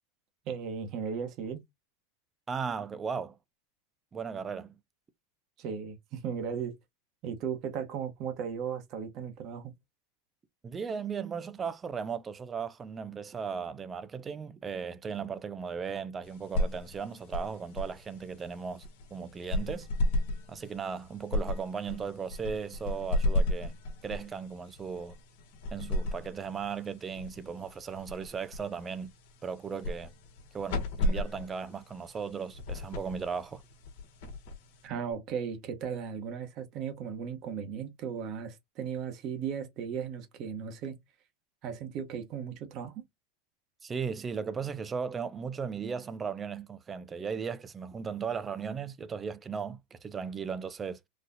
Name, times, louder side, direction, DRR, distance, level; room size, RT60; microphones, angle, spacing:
voice 1, 0.5-1.6 5.6-6.7 7.2-9.7 34.8-40.9 41.6-43.0, right 7 dB, 40° right, 1.1 m, -36 dB
voice 2, 2.5-3.4 4.1-4.8 10.6-19.9 20.5-23.7 24.0-25.1 25.7-29.1 29.4-30.1 30.5-33.6 43.8-51.1, right 6 dB, 15° right, 0.4 m, -36 dB
sound 1, 16.2-35.1, left 1 dB, 60° left, 1.2 m, -35 dB
4.0 x 2.4 x 2.7 m
supercardioid pair, 150°, 0 cm